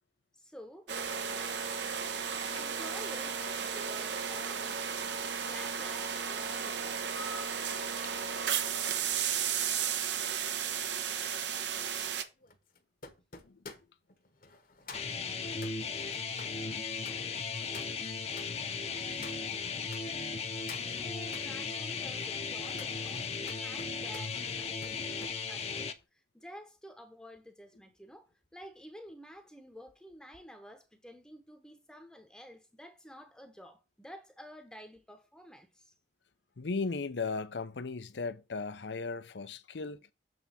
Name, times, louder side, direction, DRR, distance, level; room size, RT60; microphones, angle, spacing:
voice 1, 0.3-1.0 2.5-4.8 5.4-7.1 9.0-9.1 20.7-35.9, equal, 5° left, 0.8 m, -51 dB
sound 1, 0.9-12.2, right 7 dB, 80° right, 0.9 m, -34 dB
sound 2, 9.4-20.0 20.4-21.5 22.0-25.4 25.7-26.0, left 4 dB, 50° left, 1.1 m, -52 dB
sound 3, 14.9-25.9, left 5 dB, 35° left, 0.7 m, -36 dB
voice 2, 36.6-40.1, left 4 dB, 80° left, 0.7 m, -37 dB
7.8 x 3.5 x 5.6 m
head